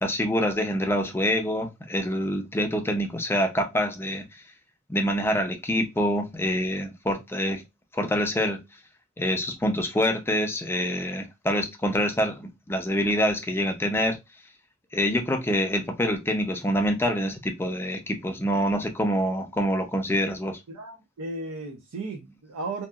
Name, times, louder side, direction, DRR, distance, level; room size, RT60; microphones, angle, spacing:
voice 1, 0.0-4.2 4.9-7.6 7.9-8.6 9.2-14.2 14.9-20.6, equal, 10° left, 0.4 m, -26 dB
voice 2, 20.7-22.9, right 2 dB, 85° right, 0.5 m, -35 dB
2.7 x 2.3 x 2.2 m
head